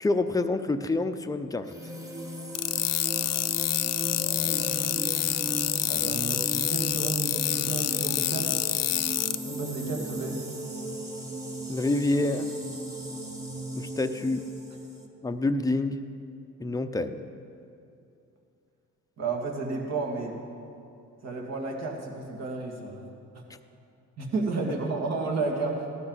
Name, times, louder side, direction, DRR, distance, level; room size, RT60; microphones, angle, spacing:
voice 1, 0.0-1.7 11.7-12.5 13.7-14.4 15.2-16.0 16.6-17.2, left 2 dB, 10° left, 7 dB, 0.6 m, -27 dB
sound 1, 1.6-15.1, right 1 dB, 10° right, 1.5 m, -36 dB
sound 2, 2.5-9.4, left 14 dB, 60° left, 0.4 m, -27 dB
voice 2, 4.2-4.6 5.9-7.4 7.7-8.6 9.4-10.4 19.2-20.3 21.2-23.0 23.3-23.4 24.2-25.9, right 3 dB, 60° right, -1 dB, 2.4 m, -32 dB
17.0 x 12.0 x 4.1 m, 2.6 s
cardioid pair, 90°, 30 cm